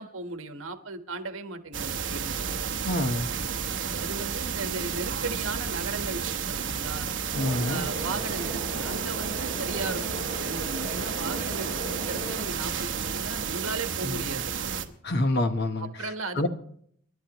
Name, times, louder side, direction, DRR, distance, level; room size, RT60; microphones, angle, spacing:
voice 1, 0.0-2.4 4.0-7.1 7.7-14.8 15.8-16.5, right 3 dB, 75° right, 1.3 m, -36 dB
sound 1, 1.7-14.8, right 6 dB, 60° right, 1.0 m, -32 dB
voice 2, 2.8-3.3 7.3-7.9 14.0-14.3 15.0-15.9 16.4-16.5, left 1 dB, 50° left, 1.1 m, -27 dB
sound 2, 7.3-12.4, right 1 dB, 20° left, 6.8 m, -37 dB
27.5 x 11.0 x 3.0 m
head